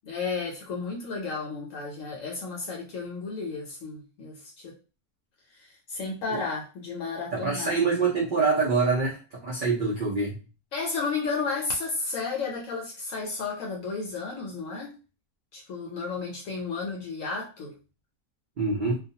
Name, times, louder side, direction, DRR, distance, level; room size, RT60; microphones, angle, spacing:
voice 1, 0.0-4.8 5.5-7.9 10.7-14.9 15.5-17.8, left 4 dB, 70° left, -1 dB, 0.9 m, -33 dB
voice 2, 7.3-10.4 18.6-19.0, right 4 dB, 75° right, -2 dB, 0.4 m, -25 dB
2.3 x 2.3 x 2.7 m, 0.32 s
omnidirectional pair, 1.6 m